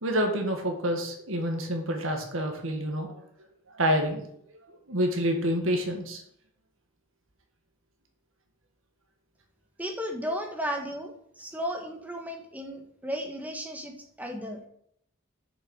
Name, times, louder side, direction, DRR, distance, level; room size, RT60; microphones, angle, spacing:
voice 1, 0.0-3.2 3.7-4.2 4.9-6.2, equal, 75° right, 4 dB, 1.8 m, -28 dB
voice 2, 9.8-14.6, equal, 10° right, 3 dB, 1.3 m, -34 dB
7.1 x 6.5 x 6.5 m, 0.71 s
head